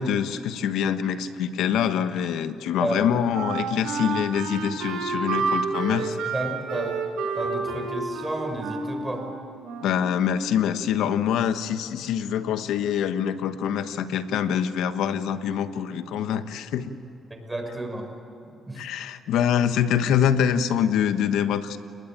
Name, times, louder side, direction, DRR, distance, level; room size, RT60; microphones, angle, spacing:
voice 1, 0.0-6.2 9.8-16.9 18.7-21.8, left 8 dB, 85° left, 10 dB, 1.3 m, -25 dB
Wind instrument woodwind instrument, 2.9-10.2, right 4 dB, 90° right, 4.2 m, -30 dB
voice 2, 6.3-7.0 7.4-9.3 17.3-18.1 18.7-18.9, right 1 dB, 15° right, 4 dB, 6.1 m, -31 dB
29.5 x 20.5 x 9.0 m, 2.8 s
cardioid pair, 90°, 0 cm